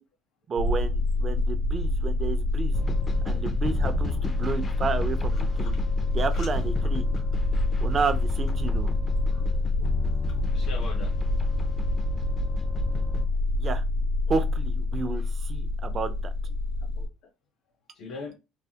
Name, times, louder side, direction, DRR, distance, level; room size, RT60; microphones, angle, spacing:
voice 1, 0.5-2.7 3.2-5.7 6.1-7.0 7.8-8.9 13.6-13.8 14.3-16.3, right 5 dB, 35° right, 0.4 m, -31 dB
sound 1, 0.6-17.1, left 2 dB, 80° right, 0.7 m, -27 dB
sound 2, 2.7-13.2, left 1 dB, 30° left, 0.4 m, -34 dB
voice 2, 6.2-6.6 7.2-7.3 9.3-9.5 10.0-10.1 10.5-11.1 15.1-15.3 16.1-16.2 16.8-17.1 17.9-18.4, left 4 dB, 65° left, 0.8 m, -42 dB
3.1 x 2.0 x 2.8 m
cardioid pair, 125°, 0 cm